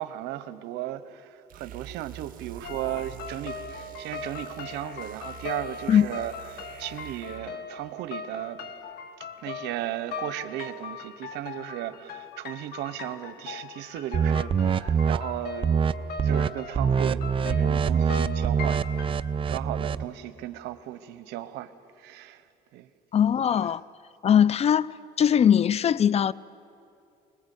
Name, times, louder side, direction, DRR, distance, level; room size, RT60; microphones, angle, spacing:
voice 1, 0.0-8.6 9.2-19.2 19.5-21.7 22.0-22.4 22.7-22.9, right 13 dB, 90° right, 0.9 m, -36 dB
sound 1, 1.5-7.6, right 10 dB, 55° right, 1.5 m, -46 dB
sound 2, 2.6-19.1, left 5 dB, 70° left, 1.8 m, -40 dB
sound 3, 14.1-15.2 15.6-15.9 16.2-16.5 16.7-20.0, right 6 dB, 30° right, 0.5 m, -24 dB
voice 2, 23.1-23.8 24.2-24.9 25.2-26.3, left 9 dB, 40° left, 0.5 m, -20 dB
24.5 x 20.5 x 8.4 m
cardioid pair, 110°, 17 cm